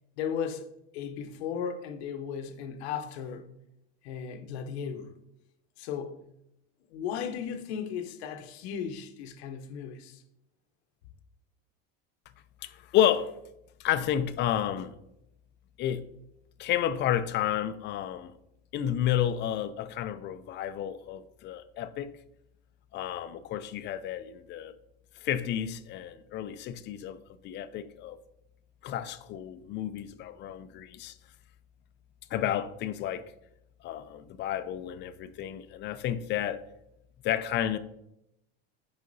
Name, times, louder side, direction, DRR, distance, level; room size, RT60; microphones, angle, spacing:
voice 1, 0.2-0.7 0.9-3.5 4.0-5.1 5.8-6.2 6.9-10.2, left 7 dB, 85° left, 0.9 m, -36 dB
voice 2, 12.6-13.3 13.8-14.9 15.8-16.1 16.6-18.3 18.7-22.2 22.9-24.7 25.1-28.2 28.8-31.2 32.3-33.3 33.8-36.6 37.2-37.8, left 11 dB, 35° left, 0.4 m, -31 dB
6.4 x 4.9 x 4.0 m
supercardioid pair, 140°, 31 cm